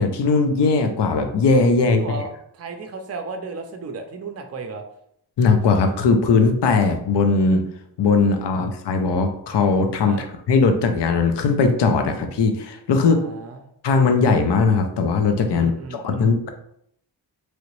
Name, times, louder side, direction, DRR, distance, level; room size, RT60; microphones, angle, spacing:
voice 1, 0.0-2.2 5.4-7.6 8.0-13.2 13.8-16.5, left 4 dB, 70° left, 6 dB, 0.5 m, -19 dB
voice 2, 1.8-4.8 10.0-10.2 13.0-13.6 15.5-16.4, right 4 dB, 35° right, 5 dB, 0.4 m, -34 dB
3.1 x 2.8 x 3.0 m, 0.72 s
wide cardioid pair, 105°, 43 cm